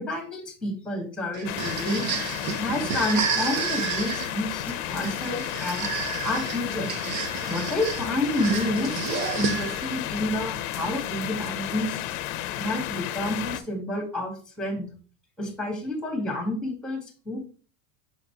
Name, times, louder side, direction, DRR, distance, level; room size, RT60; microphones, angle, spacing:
voice 1, 0.0-2.1 2.6-6.9 7.5-12.2 12.6-14.9 15.4-17.4, left 1 dB, ahead, 2 dB, 1.6 m, -29 dB
sound 1, 1.3-10.0, right 6 dB, 65° right, 1.1 m, -31 dB
sound 2, 1.4-13.6, left 13 dB, 50° left, 0.7 m, -32 dB
6.4 x 3.9 x 4.5 m, 0.39 s
supercardioid pair, 170°, 44 cm